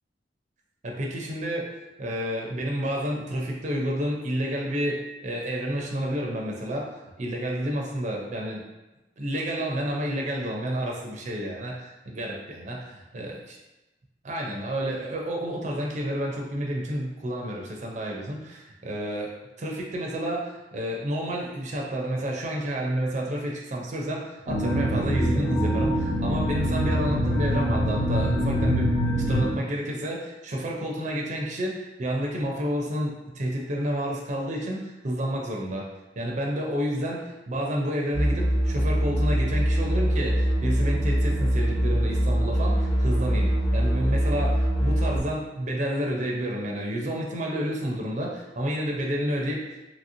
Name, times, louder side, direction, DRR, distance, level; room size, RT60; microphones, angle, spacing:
voice 1, 0.8-1.7 2.0-8.6 9.2-13.3 14.2-19.3 19.6-35.8 36.2-49.8, equal, 40° right, -2 dB, 0.5 m, -30 dB
sound 1, 24.5-29.5, equal, 90° left, 1.0 m, -24 dB
sound 2, 38.1-45.2, equal, 45° left, 0.5 m, -23 dB
2.9 x 2.8 x 2.6 m, 1.0 s
head